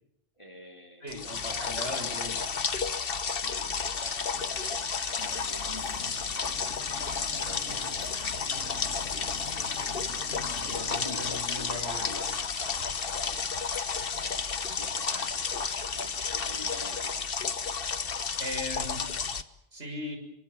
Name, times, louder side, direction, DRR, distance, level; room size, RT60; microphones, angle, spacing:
voice 1, 0.4-2.5 3.2-6.6 7.4-9.4 10.6-13.9 14.3-15.6 15.9-17.2, left 1 dB, 25° left, 3 dB, 3.2 m, -48 dB
voice 2, 1.0-2.6 10.5-12.3 15.1-15.3 18.4-19.0 19.7-20.2, left 1 dB, 65° right, 5 dB, 6.7 m, -39 dB
sound 1, 1.1-19.4, left 5 dB, 55° left, 1.3 m, -32 dB
sound 2, 5.2-11.4, left 3 dB, 80° left, 3.6 m, -45 dB
27.0 x 24.0 x 7.2 m, 0.78 s
omnidirectional pair, 1.2 m